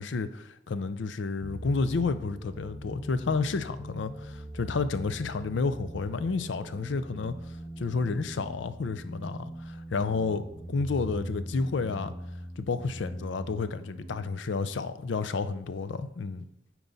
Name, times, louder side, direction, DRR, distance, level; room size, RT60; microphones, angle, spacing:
voice 1, 0.0-12.1 12.6-16.5, left 4 dB, 70° left, 0.5 m, -31 dB
sound 1, 1.4-14.4, equal, 5° right, 0.6 m, -42 dB
9.2 x 4.6 x 4.0 m
head